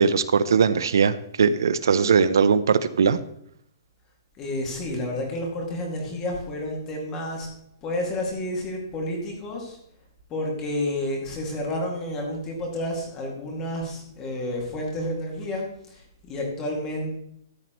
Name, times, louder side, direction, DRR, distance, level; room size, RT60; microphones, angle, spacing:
voice 1, 0.0-3.2, right 6 dB, 85° right, 14 dB, 0.6 m, -20 dB
voice 2, 4.4-7.5 7.8-9.8 10.3-17.2, left 1 dB, 15° left, 0 dB, 2.2 m, -30 dB
13.5 x 9.3 x 3.0 m, 0.71 s
hypercardioid pair, 180°, 2 cm